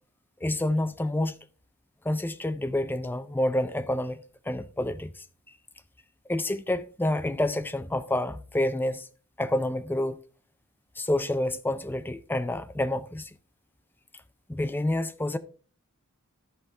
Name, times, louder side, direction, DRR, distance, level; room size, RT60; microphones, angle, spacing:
voice 1, 0.4-1.4 2.0-4.2 4.5-5.1 6.3-9.1 9.4-10.2 11.0-13.3 14.5-15.4, left 1 dB, 10° left, 0.4 m, -28 dB
13.0 x 5.1 x 3.5 m
head